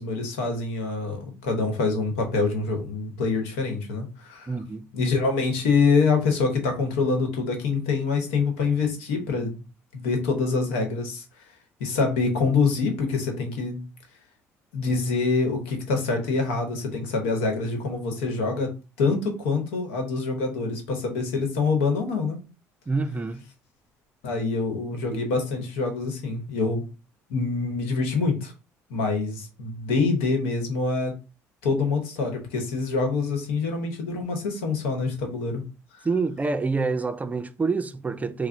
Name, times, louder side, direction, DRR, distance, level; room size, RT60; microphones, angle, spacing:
voice 1, 0.0-4.5 4.9-9.6 9.9-11.2 11.8-13.8 14.7-18.7 19.0-22.4 24.2-26.8 27.3-28.5 28.9-31.1 31.6-35.6, left 4 dB, 90° left, 1.0 m, -25 dB
voice 2, 4.5-4.8 22.9-23.4 25.1-25.2 36.0-38.5, right 4 dB, 20° right, 0.4 m, -27 dB
3.6 x 2.0 x 4.3 m
supercardioid pair, 70°, 7 cm